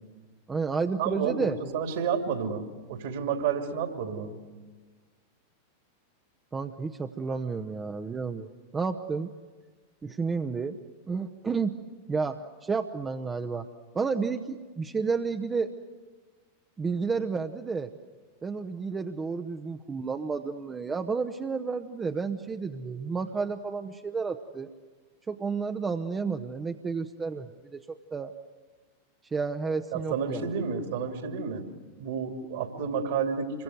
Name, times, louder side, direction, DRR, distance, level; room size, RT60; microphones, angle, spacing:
voice 1, 0.5-1.6 6.5-9.3 10.0-10.8 11.1-11.8 12.1-13.7 13.9-15.7 16.8-17.9 18.4-24.7 25.3-28.3 29.3-30.5 30.9-31.0, right 5 dB, 15° right, 6 dB, 0.9 m, -31 dB
voice 2, 1.0-4.4 29.9-31.7 32.0-33.6, right 6 dB, 55° right, 5 dB, 3.1 m, -30 dB
27.0 x 23.5 x 8.0 m, 1.4 s
figure-of-eight pair, 90°, 0 cm